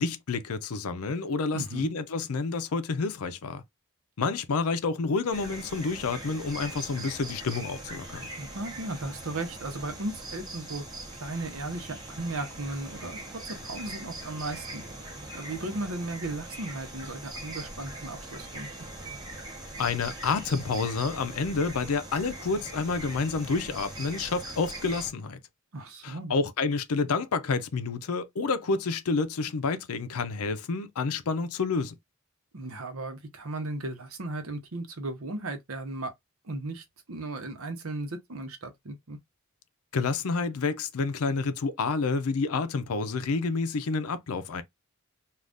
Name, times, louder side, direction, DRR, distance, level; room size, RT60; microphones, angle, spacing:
voice 1, 0.0-3.6 4.2-8.3 19.8-25.4 26.0-31.9 39.9-44.6, left 4 dB, 85° left, 0.5 m, -29 dB
voice 2, 1.5-1.9 8.4-10.9 11.1-13.2 13.5-14.8 15.3-18.7 25.7-26.3 32.5-36.1 36.4-39.2, right 2 dB, 75° right, 0.9 m, -36 dB
sound 1, 5.3-25.1, right 1 dB, 20° right, 0.9 m, -41 dB
2.5 x 2.4 x 3.4 m
head